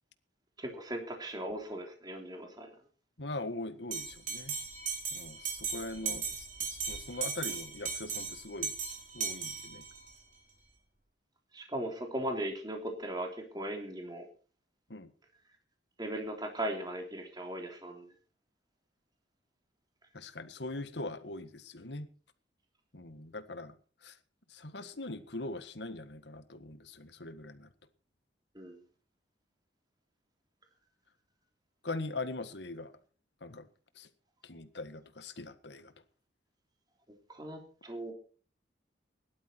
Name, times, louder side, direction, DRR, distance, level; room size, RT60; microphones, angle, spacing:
voice 1, 0.6-2.7 11.5-13.3 13.5-14.3 16.0-18.1 28.5-28.8 37.3-38.1, right 1 dB, 25° right, 3.2 m, -38 dB
voice 2, 3.2-4.5 5.1-8.7 9.1-9.8 14.9-15.1 20.1-22.1 22.9-23.7 24.0-24.1 24.5-27.7 31.8-32.9 33.4-33.7 34.0-34.1 34.4-35.9, left 2 dB, 70° left, 1.6 m, -41 dB
Bell, 3.9-10.1, right 6 dB, 45° right, 4.5 m, -37 dB
17.5 x 12.0 x 4.5 m
head